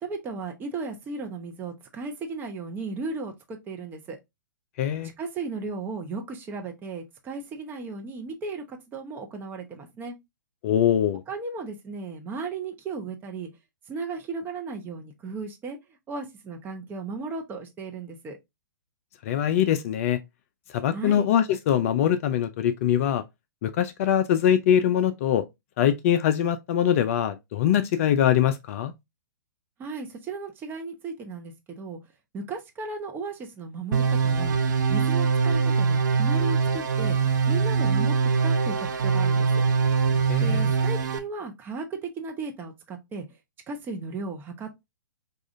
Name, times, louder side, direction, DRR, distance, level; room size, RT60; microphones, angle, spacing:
voice 1, 0.0-4.2 5.2-10.2 11.3-13.5 13.9-15.8 16.1-18.4 20.9-21.3 29.8-32.0 32.3-34.6 34.9-38.2 38.4-39.6 40.4-43.2 43.7-44.8, right 4 dB, 20° right, 0.8 m, -35 dB
voice 2, 4.8-5.1 10.6-11.2 19.2-20.2 20.7-23.2 23.6-25.4 25.8-28.9 40.3-40.7, left 10 dB, 40° left, 0.4 m, -23 dB
sound 1, 33.9-41.2, right 5 dB, 60° right, 0.7 m, -23 dB
4.8 x 2.5 x 2.5 m
figure-of-eight pair, 120°, 11 cm